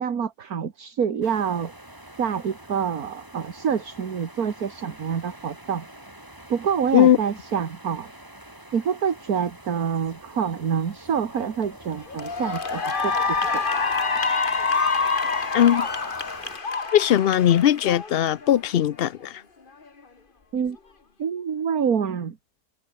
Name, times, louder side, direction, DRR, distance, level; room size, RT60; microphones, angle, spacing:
voice 1, 0.0-1.7 2.2-5.8 6.5-8.1 8.7-13.2 13.5-13.6 20.5-20.8 21.2-22.4, right 7 dB, 65° right, 2.1 m, -26 dB
sound 1, 1.2-16.6, right 1 dB, 10° right, 3.3 m, -46 dB
Cheering / Applause, 11.4-11.6 12.1-18.6, left 4 dB, 35° left, 1.8 m, -26 dB
voice 2, 15.5-15.9 16.9-19.4, left 10 dB, 65° left, 0.5 m, -19 dB
omnidirectional pair, 1.7 m